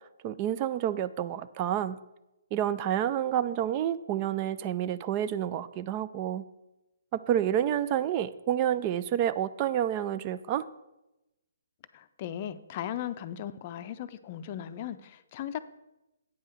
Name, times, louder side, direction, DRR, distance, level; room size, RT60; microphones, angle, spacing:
voice 1, 0.2-2.0 2.5-6.5 7.1-10.7, right 10 dB, 30° right, 13 dB, 0.4 m, -29 dB
voice 2, 11.9-15.6, left 10 dB, 35° left, 12 dB, 0.5 m, -37 dB
9.0 x 5.5 x 6.4 m, 0.95 s
figure-of-eight pair, 135°, 0 cm